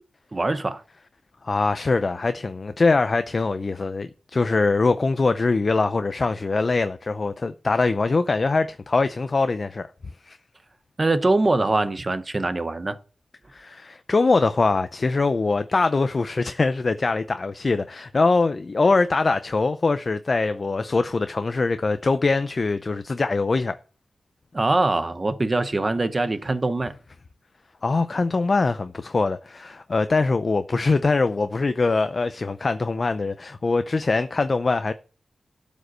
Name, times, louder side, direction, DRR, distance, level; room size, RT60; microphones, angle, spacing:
voice 1, 0.3-0.8 11.0-13.0 24.5-26.9, right 2 dB, 30° right, 0.9 m, -23 dB
voice 2, 1.4-9.9 10.2-10.4 13.5-23.8 27.8-34.9, left 3 dB, 40° left, 0.5 m, -23 dB
12.5 x 5.2 x 6.2 m
wide cardioid pair, 115°, 0 cm